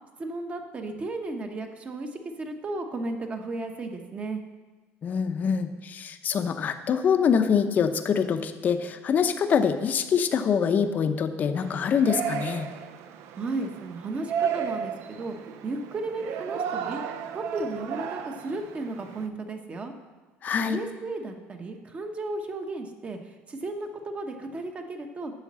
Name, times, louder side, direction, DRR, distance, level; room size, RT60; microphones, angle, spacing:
voice 1, 0.2-4.4 13.4-19.9 20.6-25.3, right 2 dB, 25° right, 5 dB, 1.0 m, -34 dB
voice 2, 5.0-12.7 20.4-20.8, left 7 dB, 35° left, 8 dB, 0.7 m, -25 dB
Yell, 11.6-19.3, right 8 dB, 65° right, 0.7 m, -34 dB
8.4 x 6.4 x 7.4 m, 1.3 s
cardioid pair, 135°, 5 cm